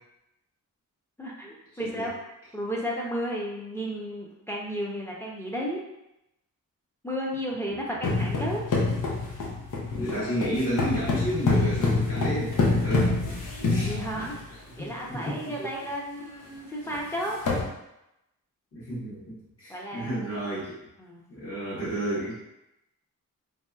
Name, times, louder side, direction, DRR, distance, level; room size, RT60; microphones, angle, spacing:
voice 1, 1.2-2.1 2.5-5.8 7.0-8.7 13.8-17.4 19.7-20.4 21.0-21.3, equal, 10° left, -4 dB, 0.6 m, -33 dB
sound 1, 8.0-14.5 15.2-15.3 15.6-15.8 16.2-16.3 16.9-17.0 17.3-17.6, left 3 dB, 70° left, 0.8 m, -26 dB
voice 2, 9.9-13.2 13.6-14.2 14.8-15.4 18.7-20.8 21.3-22.4, right 1 dB, 45° left, -11 dB, 1.1 m, -31 dB
3.1 x 2.8 x 2.3 m, 0.88 s
wide cardioid pair, 95°, 33 cm